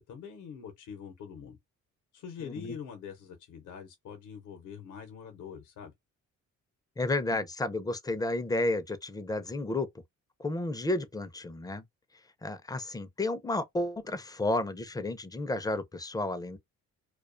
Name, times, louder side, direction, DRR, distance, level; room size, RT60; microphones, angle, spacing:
voice 1, 0.0-1.6 2.1-5.9, left 7 dB, 80° left, 0.7 m, -44 dB
voice 2, 2.4-2.7 7.0-9.9 10.4-11.8 12.4-16.6, left 2 dB, 15° left, 0.4 m, -32 dB
2.3 x 2.2 x 2.4 m
cardioid pair, 90°, 30 cm